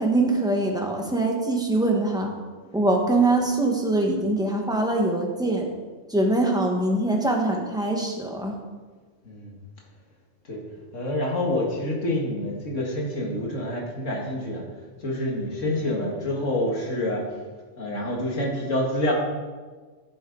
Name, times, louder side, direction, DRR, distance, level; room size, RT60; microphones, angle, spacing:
voice 1, 0.0-2.3 2.7-5.7 6.1-8.6, right 2 dB, 5° right, 0 dB, 1.4 m, -23 dB
voice 2, 10.9-14.6 15.0-17.2 17.8-19.1, left 1 dB, 80° left, -2 dB, 2.2 m, -27 dB
15.0 x 7.6 x 3.9 m, 1.4 s
omnidirectional pair, 1.3 m